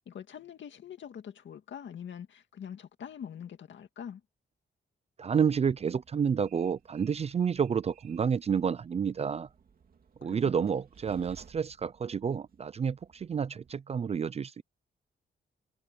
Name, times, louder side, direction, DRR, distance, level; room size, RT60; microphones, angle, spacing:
voice 1, 0.1-4.2 10.2-10.5, left 8 dB, 75° left, 1.9 m, -44 dB
voice 2, 5.2-9.5 10.2-14.6, right 7 dB, 35° right, 0.4 m, -29 dB
Train, 5.4-13.7, right 7 dB, 50° right, 2.8 m, -59 dB
wide cardioid pair, 170°, 19 cm